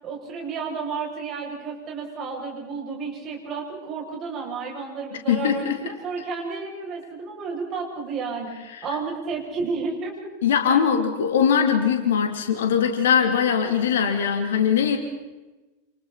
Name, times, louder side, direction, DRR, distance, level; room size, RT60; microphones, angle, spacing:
voice 1, 0.0-10.3, right 4 dB, 30° right, -1 dB, 7.8 m, -32 dB
voice 2, 5.3-5.8 10.4-15.0, left 7 dB, 60° left, 5 dB, 3.5 m, -21 dB
28.5 x 28.5 x 4.4 m, 1.1 s
figure-of-eight pair, 90°, 0 cm